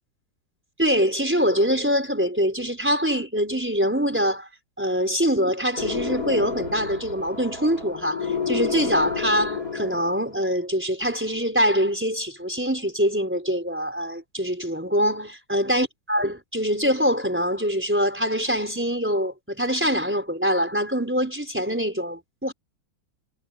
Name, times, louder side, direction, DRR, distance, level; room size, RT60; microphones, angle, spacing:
voice 1, 0.8-4.5 4.8-22.5, equal, 5° right, 4.1 m, -24 dB
sound 1, 5.8-10.4, left 6 dB, 45° left, 7.8 m, -30 dB
omnidirectional pair, 2.2 m